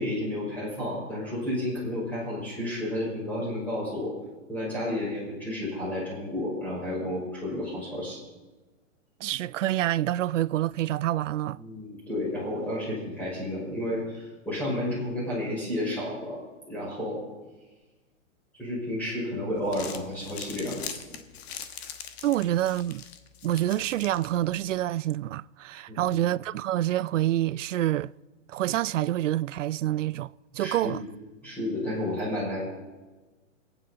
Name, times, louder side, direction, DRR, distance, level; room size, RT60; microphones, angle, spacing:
voice 1, 0.0-4.1 4.5-8.2 11.6-16.4 16.7-17.2 18.6-21.0 25.9-26.1 30.6-31.0 31.4-32.7, left 1 dB, 5° left, 5.8 m, -31 dB
voice 2, 9.2-11.6 22.2-23.0 23.4-28.1 28.5-31.0, right 13 dB, 65° right, 0.5 m, -27 dB
Crumpling crinkling, 19.5-24.8, left 8 dB, 50° left, 1.4 m, -42 dB
25.5 x 9.0 x 4.1 m
hypercardioid pair, 160°, 40 cm